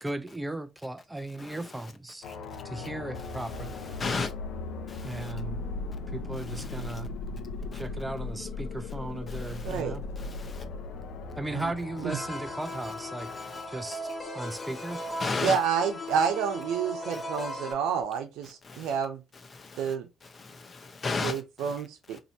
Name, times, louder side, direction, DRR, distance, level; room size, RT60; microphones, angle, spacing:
voice 1, 0.0-2.3 2.6-4.0 5.0-5.6 6.1-7.1 7.7-10.1 11.4-13.3 13.7-15.0, right 1 dB, 10° right, 0.5 m, -37 dB
sound 1, 2.2-18.0, left 3 dB, 80° left, 0.7 m, -39 dB
voice 2, 4.0-4.3 4.9-5.3 7.7-7.8 9.3-9.8 10.4-10.6 15.2-15.6 18.7-18.9 19.6-19.8 20.4-21.4, left 4 dB, 35° left, 0.8 m, -33 dB
voice 3, 9.6-10.0 11.5-11.7 12.0-12.2 15.4-19.2 19.8-20.1 21.2-22.2, right 7 dB, 85° right, 0.8 m, -29 dB
sound 2, 12.1-17.7, equal, 20° left, 1.2 m, -38 dB
2.8 x 2.6 x 4.2 m
supercardioid pair, 80°, 0 cm